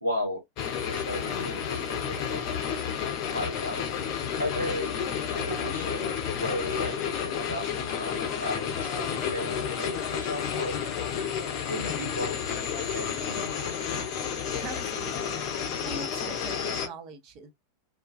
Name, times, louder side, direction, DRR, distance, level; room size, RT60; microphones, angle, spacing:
voice 1, 0.0-0.4 0.9-2.9 3.3-3.9 4.4-4.9 5.3-10.8 11.7-12.4 12.9-13.8, left 1 dB, 85° right, 1.1 m, -35 dB
sound 1, 0.6-16.9, left 8 dB, 40° left, 0.6 m, -31 dB
voice 2, 14.6-15.4 15.8-17.5, right 4 dB, 40° right, 0.6 m, -42 dB
2.4 x 2.3 x 2.3 m
figure-of-eight pair, 90°, 0 cm